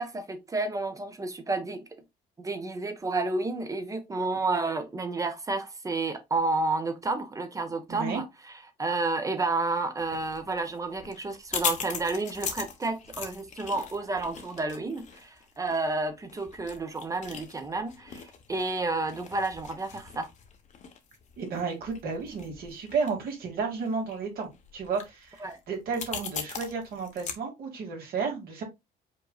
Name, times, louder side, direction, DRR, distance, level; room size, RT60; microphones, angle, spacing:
voice 1, 0.0-1.8 2.4-8.3 8.8-20.3 25.4-25.6, right 3 dB, 20° right, 0.9 m, -30 dB
voice 2, 7.9-8.2 21.4-28.6, right 5 dB, 65° right, 2.3 m, -32 dB
sound 1, 10.0-27.4, left 6 dB, 45° left, 1.1 m, -40 dB
5.3 x 3.8 x 2.4 m
cardioid pair, 110°, 17 cm